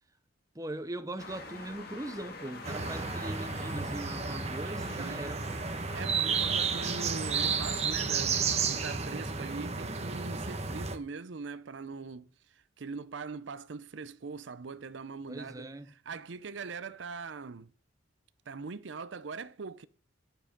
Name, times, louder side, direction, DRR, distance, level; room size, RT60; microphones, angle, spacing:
voice 1, 0.5-5.6 15.3-15.9, right 1 dB, 15° right, 0.7 m, -40 dB
sound 1, 1.2-7.9, left 3 dB, 50° left, 2.0 m, -46 dB
sound 2, 2.6-11.0, right 5 dB, 35° right, 1.0 m, -32 dB
voice 2, 5.9-17.7 18.5-19.9, right 4 dB, 65° right, 0.6 m, -42 dB
9.9 x 7.3 x 5.2 m
head